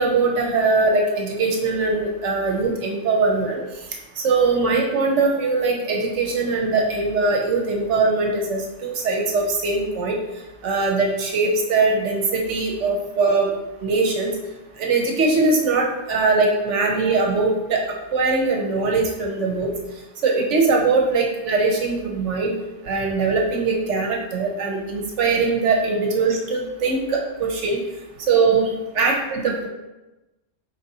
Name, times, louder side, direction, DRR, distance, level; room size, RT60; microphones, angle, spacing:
voice 1, 0.0-3.6 4.2-10.2 10.6-13.5 13.8-14.3 14.8-17.8 18.1-19.7 20.2-22.5 22.8-27.8 28.3-28.7 29.0-29.7, right 3 dB, 75° right, 0 dB, 1.0 m, -21 dB
4.7 x 4.1 x 2.7 m, 1.0 s
omnidirectional pair, 1.2 m